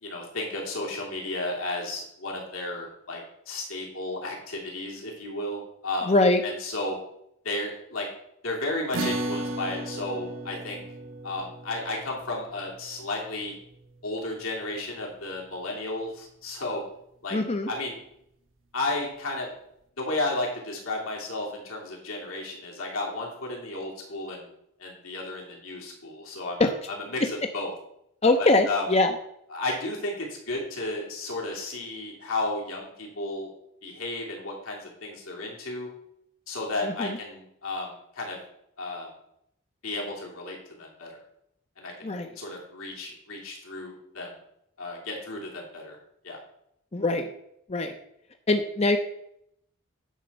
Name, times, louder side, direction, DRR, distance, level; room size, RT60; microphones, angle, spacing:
voice 1, 0.0-3.2 3.5-6.1 6.4-7.0 7.4-8.1 8.4-10.8 11.2-13.5 14.0-16.8 17.2-17.4 17.7-18.0 18.7-19.5 20.0-24.5 24.8-27.7 28.4-28.8 29.5-33.5 33.8-35.9 36.5-38.4 38.8-39.1 39.8-41.1 41.8-44.3 44.8-46.0 46.2-46.4, left 2 dB, 85° left, -1 dB, 2.9 m, -33 dB
voice 2, 6.1-6.4 17.3-17.7 26.6-26.7 28.2-29.1 36.8-37.2 42.0-42.3 46.9-47.3 47.7-48.0 48.5-49.0, left 2 dB, 30° left, 6 dB, 0.6 m, -22 dB
sound 1, 8.9-15.6, right 2 dB, 70° right, 1.0 m, -36 dB
10.0 x 4.3 x 6.6 m, 0.76 s
head